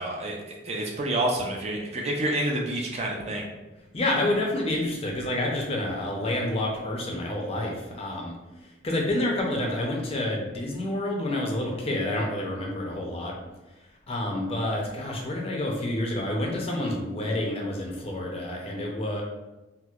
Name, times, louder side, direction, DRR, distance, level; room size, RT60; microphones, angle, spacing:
voice 1, 0.0-3.5, right 1 dB, 35° right, 0 dB, 0.4 m, -28 dB
voice 2, 3.9-8.3 8.8-13.3 14.1-19.2, left 1 dB, 30° left, -1 dB, 0.5 m, -28 dB
4.3 x 2.0 x 2.4 m, 1.1 s
head